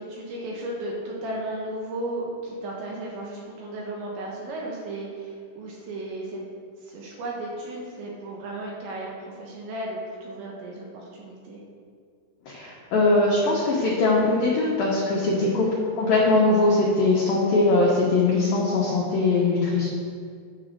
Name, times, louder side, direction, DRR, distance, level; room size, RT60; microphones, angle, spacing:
voice 1, 0.0-6.4 6.8-11.6 15.4-15.8, right 1 dB, 70° right, -3 dB, 3.2 m, -35 dB
voice 2, 12.5-15.7 16.0-19.9, left 2 dB, 75° left, -5 dB, 2.2 m, -21 dB
11.0 x 5.1 x 6.5 m, 2.1 s
omnidirectional pair, 6.0 m